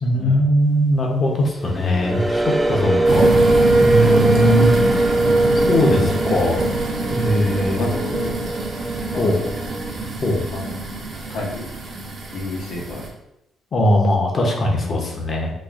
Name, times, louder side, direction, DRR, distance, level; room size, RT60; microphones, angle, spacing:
voice 1, 0.0-3.4 3.8-4.8 5.5-6.6 7.1-7.9 9.2-9.5 10.2-10.4 13.7-15.5, equal, 45° left, 1 dB, 0.7 m, -20 dB
sound 1, 1.5-9.9, right 1 dB, 10° right, 0.4 m, -20 dB
voice 2, 2.8-3.2 7.4-8.6 9.1-9.4 10.5-10.8 11.3-11.6 12.3-13.1 14.8-15.1, left 2 dB, 75° left, -1 dB, 0.9 m, -30 dB
sound 2, 3.0-13.1, right 3 dB, 50° right, 0.7 m, -25 dB
4.1 x 2.4 x 2.4 m, 0.85 s
cardioid pair, 90°, 0 cm